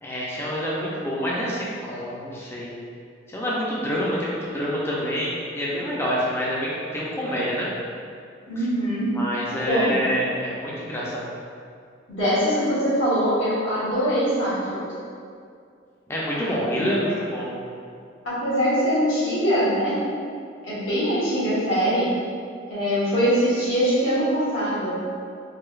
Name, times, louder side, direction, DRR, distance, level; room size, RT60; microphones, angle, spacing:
voice 1, 0.0-2.7 3.3-7.7 9.1-11.3 16.1-17.6, equal, 15° left, -6 dB, 0.4 m, -27 dB
voice 2, 8.5-9.1 9.6-10.0 12.1-14.9 16.7-16.9 18.2-19.9 20.6-22.1 22.7-25.0, equal, 80° left, -12 dB, 1.2 m, -22 dB
3.1 x 2.7 x 2.3 m, 2.3 s
head